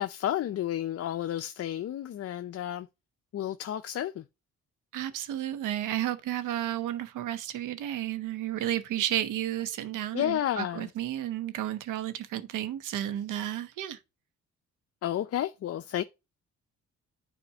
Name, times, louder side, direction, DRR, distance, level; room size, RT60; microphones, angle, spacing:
voice 1, 0.0-2.9 3.3-4.2 10.1-10.9 15.0-16.0, left 11 dB, 50° left, 0.6 m, -31 dB
voice 2, 4.9-14.0, right 12 dB, 90° right, 1.0 m, -32 dB
10.5 x 4.3 x 2.8 m
cardioid pair, 90°, 30 cm